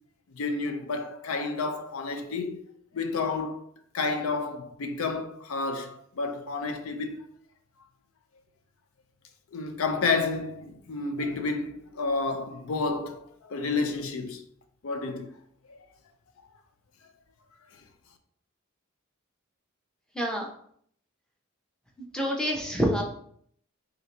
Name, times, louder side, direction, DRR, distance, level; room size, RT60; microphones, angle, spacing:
voice 1, 0.4-2.6 2.9-3.6 3.9-7.2 9.5-14.4 14.8-15.3 15.7-15.8, left 3 dB, 75° left, 0.5 m, -30 dB
voice 2, 20.1-20.5 22.1-23.0, equal, 5° left, 0.6 m, -27 dB
3.8 x 2.7 x 3.2 m
head